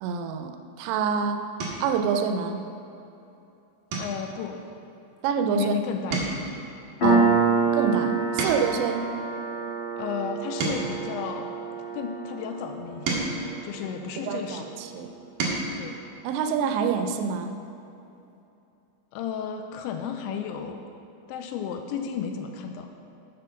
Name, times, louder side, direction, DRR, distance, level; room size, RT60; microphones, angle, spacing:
voice 1, 0.0-1.4 1.8-2.6 5.2-5.7 7.0-7.3 7.7-9.0 14.3-15.1 16.2-17.5, right 6 dB, 90° right, 6 dB, 3.1 m, -26 dB
sound 1, 0.7-1.0 1.6-2.0 2.5-2.8 3.1-3.3 3.9-5.7 6.0-8.9 9.5-12.0 12.6-14.5 15.0-15.8 17.1-17.2 17.5-17.7, right 3 dB, 65° right, 2.7 m, -34 dB
voice 2, 4.0-4.6 5.5-6.4 10.0-11.5 11.9-13.3 13.6-14.6 15.8-16.0 19.1-20.8 21.3-22.9, left 7 dB, 85° left, 5 dB, 2.7 m, -33 dB
Piano, 7.0-14.2, right 4 dB, 60° left, 1.2 m, -27 dB
8.1 x 6.8 x 5.6 m, 2.8 s
omnidirectional pair, 5.4 m